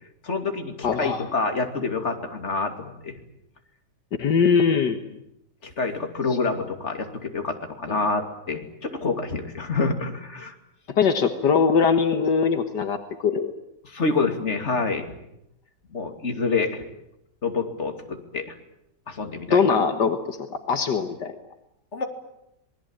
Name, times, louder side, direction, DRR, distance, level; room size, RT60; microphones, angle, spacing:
voice 1, 0.2-3.1 5.6-10.5 13.8-15.1 15.9-16.8 17.4-18.5 19.1-19.6 21.9-22.0, left 4 dB, 40° left, 5 dB, 3.0 m, -27 dB
voice 2, 0.8-1.2 4.2-5.0 7.9-8.0 11.0-13.5 19.5-21.3, left 6 dB, 75° left, 7 dB, 2.0 m, -21 dB
26.5 x 21.0 x 8.9 m, 0.83 s
omnidirectional pair, 1.9 m